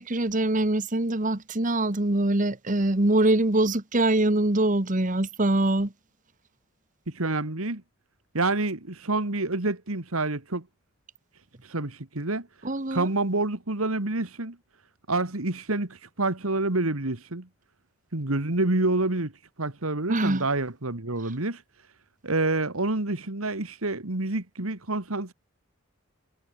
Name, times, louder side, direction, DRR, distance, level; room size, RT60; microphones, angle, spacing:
voice 1, 0.0-5.9 12.6-13.1 20.1-20.5 21.2-21.3, right 2 dB, 35° right, 1.5 m, -24 dB
voice 2, 7.1-7.8 8.3-10.7 11.7-12.5 12.9-14.6 15.1-17.5 18.1-19.3 19.6-21.6 22.2-25.3, right 2 dB, 85° right, 2.3 m, -27 dB
head